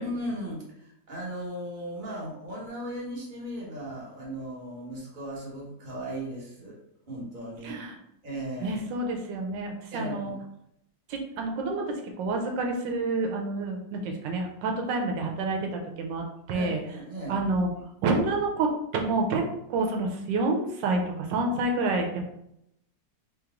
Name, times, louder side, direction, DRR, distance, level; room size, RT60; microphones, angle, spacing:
voice 1, 0.0-6.8 7.1-7.8 8.2-8.8 9.9-10.4 16.5-17.4, equal, 30° right, -5 dB, 1.3 m, -37 dB
voice 2, 7.6-7.9 8.6-10.3 11.1-16.8 17.3-17.7 18.0-19.4 19.7-22.2, right 3 dB, 85° right, 2 dB, 1.3 m, -28 dB
3.4 x 3.0 x 3.6 m, 0.78 s
omnidirectional pair, 2.0 m